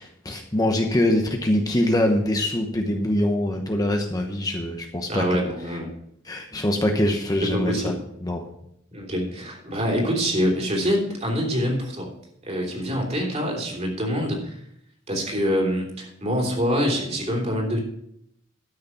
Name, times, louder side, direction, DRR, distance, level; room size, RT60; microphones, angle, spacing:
voice 1, 0.0-5.4 6.2-7.9 8.2-8.4, left 1 dB, 20° left, 3 dB, 1.0 m, -23 dB
voice 2, 5.1-5.9 7.4-8.0 8.9-12.1 12.4-14.6 15.1-17.8, equal, 35° right, 0 dB, 3.3 m, -25 dB
12.5 x 6.6 x 5.7 m, 0.73 s
head